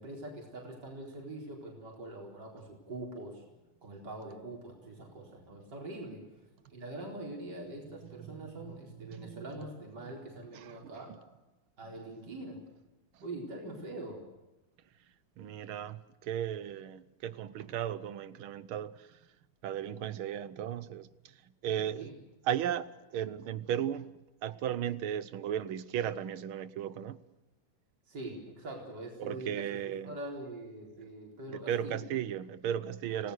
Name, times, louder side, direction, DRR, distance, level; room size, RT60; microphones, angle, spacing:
voice 1, 0.0-3.4 3.8-6.2 6.7-11.1 11.8-12.6 13.2-14.2 21.9-22.1 28.1-32.0 33.1-33.2, right 1 dB, 55° right, 4.9 m, -43 dB
voice 2, 7.8-9.6 10.5-11.2 11.8-11.9 13.1-13.2 15.4-19.2 19.6-21.4 21.6-22.1 22.4-24.1 24.4-27.2 29.2-30.2 31.5-33.3, right 10 dB, 90° right, 1.8 m, -36 dB
29.5 x 18.5 x 6.6 m
omnidirectional pair, 2.2 m